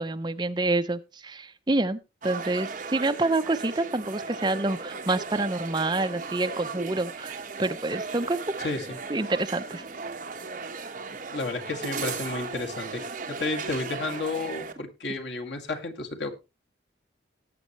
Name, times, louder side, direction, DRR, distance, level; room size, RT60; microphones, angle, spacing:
voice 1, 0.0-8.4 9.1-9.8, right 2 dB, 25° right, 10 dB, 0.6 m, -27 dB
sound 1, 2.2-14.7, right 4 dB, 45° right, 1.3 m, -36 dB
voice 2, 11.1-13.0 13.3-16.3, left 3 dB, 75° left, 3 dB, 2.1 m, -32 dB
18.5 x 7.4 x 3.1 m, 0.28 s
head